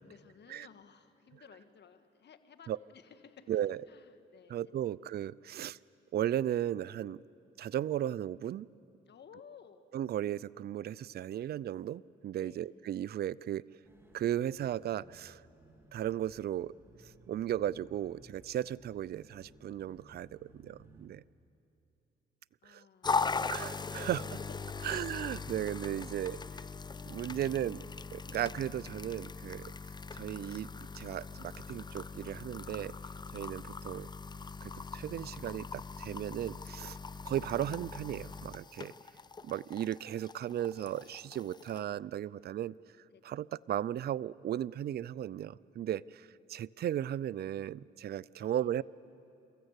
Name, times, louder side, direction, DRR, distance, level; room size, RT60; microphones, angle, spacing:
voice 1, 0.0-4.6 5.4-5.5 9.1-9.8 12.4-12.8 22.6-24.1 24.8-25.1 25.4-25.6 25.9-26.3 27.3-27.5 28.3-28.4 43.1-43.4 48.4-48.7, left 7 dB, 55° left, 9 dB, 1.5 m, -58 dB
voice 2, 3.5-3.8 4.5-5.8 6.1-7.2 7.6-8.7 9.9-13.6 14.1-15.4 15.9-16.7 17.3-21.2 22.7-22.8 23.5-24.3 24.8-26.4 27.1-27.8 28.1-29.7 30.1-30.7 31.0-32.9 33.3-34.1 34.6-37.0 37.3-38.9 39.4-42.7 43.2-48.8, right 11 dB, 50° right, 21 dB, 0.4 m, -36 dB
sound 1, 13.8-21.1, right 1 dB, 10° right, 3.1 m, -60 dB
sound 2, 23.0-41.8, left 4 dB, 20° left, 0.5 m, -40 dB
30.0 x 14.5 x 8.1 m, 2.7 s
supercardioid pair, 65°, 21 cm